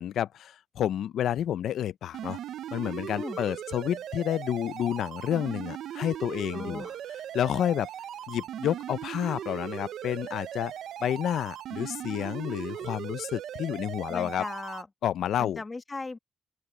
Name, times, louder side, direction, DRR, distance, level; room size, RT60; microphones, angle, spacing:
voice 1, 0.0-2.4 2.7-6.8 7.3-7.9 8.3-10.7 11.0-14.4 15.0-15.6, left 10 dB, 90° left, 0.4 m, -30 dB
sound 1, 2.1-14.8, right 10 dB, 85° right, 0.5 m, -39 dB
voice 2, 6.5-7.0 14.1-14.9 15.4-16.2, left 3 dB, 20° left, 1.6 m, -37 dB
open air
wide cardioid pair, 155°, 0 cm